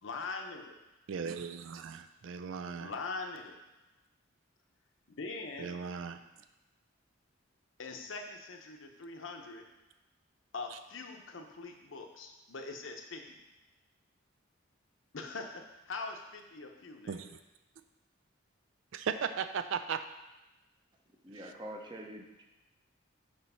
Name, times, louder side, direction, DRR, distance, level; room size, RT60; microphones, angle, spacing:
voice 1, 0.0-0.8 2.8-3.6 5.1-5.8 7.8-9.6 10.5-13.4 15.1-17.3, left 3 dB, 70° left, 3 dB, 0.8 m, -42 dB
voice 2, 1.1-2.9 5.6-6.2 17.1-17.3 18.9-20.1, right 6 dB, 70° right, 10 dB, 0.4 m, -37 dB
voice 3, 21.2-22.4, right 1 dB, 25° right, 1 dB, 0.8 m, -45 dB
6.8 x 3.1 x 5.5 m, 1.0 s
head